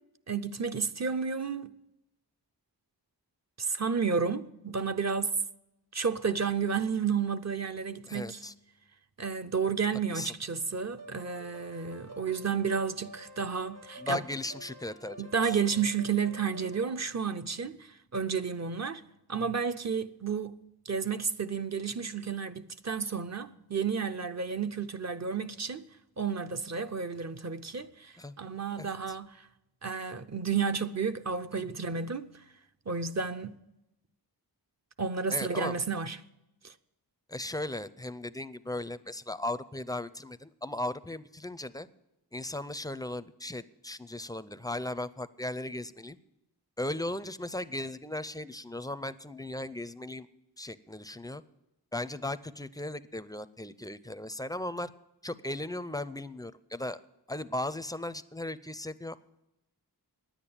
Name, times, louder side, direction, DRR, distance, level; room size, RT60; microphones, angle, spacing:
voice 1, 0.3-1.7 3.6-5.4 5.9-8.4 9.2-14.2 15.2-19.0 19.3-20.6 20.9-25.8 26.2-29.5 29.8-32.3 32.9-33.6 35.0-36.2 36.6-36.7, right 6 dB, 40° right, 0.6 m, -31 dB
voice 2, 8.1-8.5 10.1-10.3 14.0-15.6 28.2-28.3 28.8-28.9 31.5-31.6 35.3-35.8 37.3-41.9 42.3-46.2 46.8-50.3 50.6-51.4 51.9-54.9 55.2-57.0 57.3-59.2, left 1 dB, 10° left, 0.4 m, -37 dB
sound 1, 11.0-16.9, equal, 85° right, 3.9 m, -49 dB
10.0 x 8.9 x 8.5 m
wide cardioid pair, 65°, 41 cm